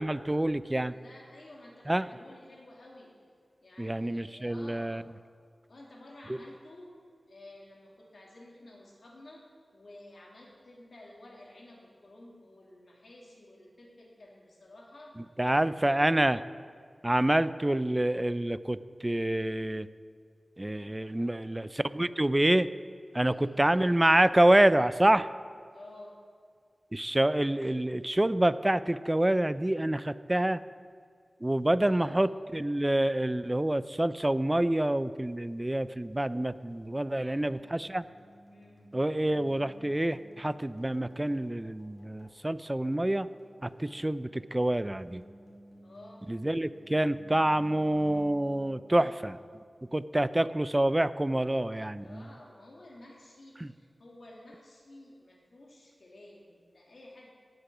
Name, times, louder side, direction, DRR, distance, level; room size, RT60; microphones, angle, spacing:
voice 1, 0.0-0.9 1.9-2.1 3.8-5.0 6.3-6.4 15.4-16.4 17.0-19.9 20.6-22.7 23.1-25.3 26.9-30.6 31.4-38.0 38.9-43.3 43.6-45.2 46.3-49.4 49.9-52.3 53.6-53.7, right 1 dB, 20° right, 14 dB, 0.4 m, -27 dB
voice 2, 0.7-3.1 3.6-5.1 5.7-7.0 7.3-9.5 9.7-15.1 15.5-16.4 21.0-21.4 23.1-23.6 25.7-26.2 31.8-32.3 37.1-37.7 38.5-38.8 45.8-46.3 48.9-49.1 52.0-57.3, left 1 dB, 65° left, -2 dB, 2.5 m, -52 dB
sound 1, 35.4-49.6, equal, 90° left, 2.5 m, -57 dB
17.0 x 6.7 x 6.0 m, 2.2 s
wide cardioid pair, 90°, 0 cm